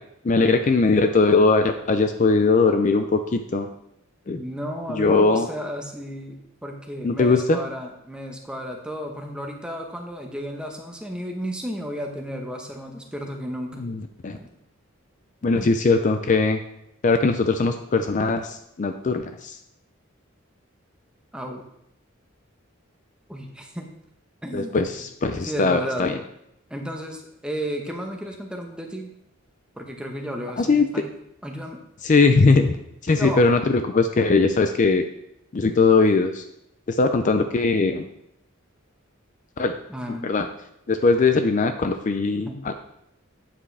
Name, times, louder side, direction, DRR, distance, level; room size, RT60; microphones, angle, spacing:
voice 1, 0.2-3.7 4.3-4.4 4.9-5.5 7.0-7.6 13.7-14.4 15.4-16.6 17.0-19.6 24.5-26.2 30.6-30.8 32.0-32.8 33.0-35.1 35.5-36.4 36.9-38.1 39.6-39.8 40.2-40.5 40.9-42.7, left 3 dB, 40° left, 8 dB, 0.4 m, -20 dB
voice 2, 4.3-13.9 14.3-14.5 15.5-15.7 21.3-21.7 23.3-23.9 24.4-24.9 25.4-26.1 26.7-29.1 29.8-31.1 31.4-31.8 33.2-33.5 39.9-40.3 42.4-42.6, equal, 5° right, 2 dB, 1.0 m, -33 dB
8.5 x 7.3 x 3.4 m, 0.78 s
head